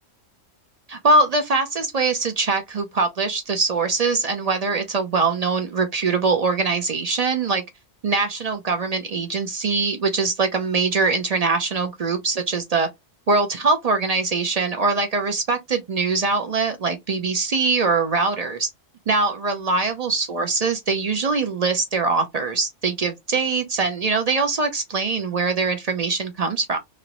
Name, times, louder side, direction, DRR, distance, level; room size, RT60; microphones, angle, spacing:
voice 1, 0.9-7.6 8.0-12.9 13.3-18.7 19.1-26.8, right 3 dB, 55° right, 0.4 m, -22 dB
3.0 x 2.5 x 2.9 m
omnidirectional pair, 1.3 m